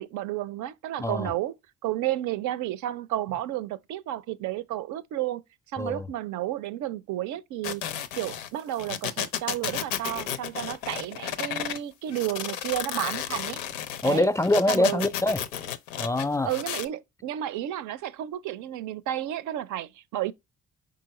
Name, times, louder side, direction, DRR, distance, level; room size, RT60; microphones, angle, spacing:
voice 1, 0.0-1.6 1.8-5.4 5.7-7.8 8.2-13.6 14.0-14.3 14.7-15.0 16.4-20.3, right 13 dB, 55° right, 0.5 m, -32 dB
voice 2, 1.0-1.3 5.8-6.1 14.0-15.4 16.0-16.5, left 1 dB, 10° left, 0.4 m, -24 dB
sound 1, 7.6-11.8 12.1-16.8, left 10 dB, 85° left, 0.5 m, -33 dB
4.6 x 3.8 x 3.0 m
hypercardioid pair, 50°, 37 cm